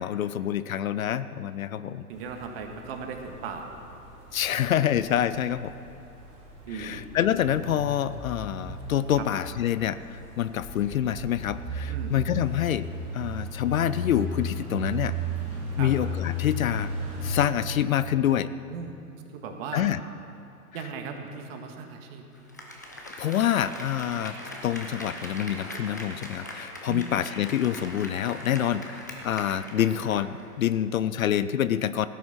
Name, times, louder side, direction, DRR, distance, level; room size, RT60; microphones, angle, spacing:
voice 1, 0.0-2.1 4.3-5.8 6.7-12.9 13.1-15.2 15.8-16.9 17.2-18.5 19.7-20.0 23.2-32.1, left 10 dB, 60° left, 15 dB, 0.6 m, -27 dB
sound 1, 2.1-17.4, equal, 15° right, 3.4 m, -35 dB
voice 2, 2.1-3.7 6.7-7.0 9.2-9.3 11.9-12.1 15.8-15.9 18.7-18.9 19.3-19.9 20.7-22.2 26.9-27.0, right 6 dB, 40° right, 4 dB, 1.7 m, -37 dB
Applause, 22.3-30.5 30.8-30.9, left 1 dB, 15° left, 0.3 m, -41 dB
16.0 x 9.3 x 5.8 m, 2.8 s
figure-of-eight pair, 120°, 46 cm